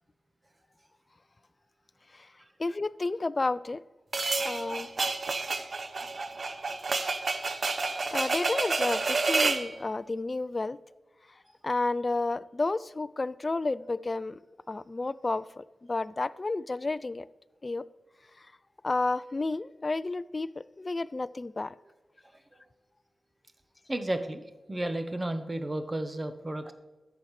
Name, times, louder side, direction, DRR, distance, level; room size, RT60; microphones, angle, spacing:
voice 1, 2.6-3.8 4.4-4.9 8.1-10.8 11.6-14.4 14.7-17.3 17.6-17.8 18.8-21.7, left 3 dB, 40° left, 0.3 m, -31 dB
sound 1, 4.1-9.7, right 3 dB, 55° right, 0.7 m, -29 dB
voice 2, 23.9-26.7, right 1 dB, 25° right, 0.9 m, -33 dB
11.0 x 7.1 x 3.2 m
cardioid pair, 50°, 0 cm